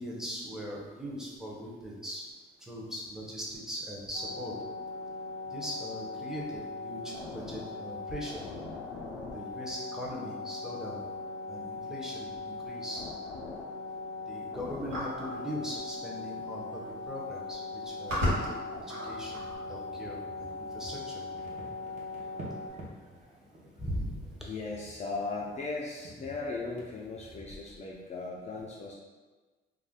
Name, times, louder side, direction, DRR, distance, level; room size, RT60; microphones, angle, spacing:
voice 1, 0.0-2.2 2.6-4.5 5.5-8.4 9.3-11.0 11.5-13.1 14.3-18.6 18.9-19.4 19.7-21.2 23.8-24.5, equal, 5° right, -4 dB, 0.7 m, -40 dB
sound 1, 4.1-22.7, left 3 dB, 90° left, 0.5 m, -40 dB
sound 2, 14.9-15.3 16.4-16.5 16.8-17.1 17.7-19.6, left 1 dB, 80° right, 1.2 m, -32 dB
sound 3, 19.0-27.4, right 1 dB, 35° right, 0.8 m, -50 dB
voice 2, 24.4-28.9, left 3 dB, 35° left, -4 dB, 0.4 m, -37 dB
2.4 x 2.2 x 3.5 m, 1.3 s
cardioid pair, 90°, 20 cm